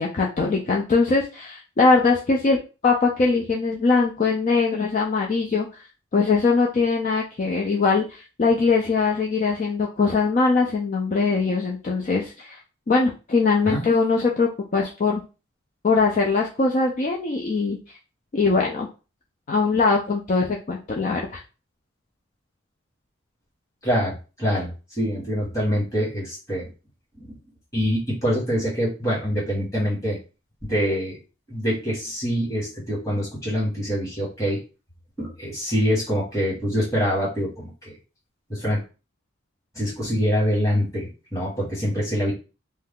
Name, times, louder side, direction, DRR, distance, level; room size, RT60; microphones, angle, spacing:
voice 1, 0.0-2.6 2.8-5.7 6.1-12.6 12.9-15.2 15.8-17.8 18.3-18.9 19.5-21.4, left 4 dB, 40° left, -1 dB, 0.4 m, -21 dB
voice 2, 23.8-26.7 27.2-27.3 27.7-30.2 30.6-31.2 31.5-34.6 35.2-37.9 38.5-38.8 39.7-42.3, equal, 15° left, -6 dB, 1.4 m, -25 dB
2.7 x 2.2 x 3.5 m, 0.33 s
head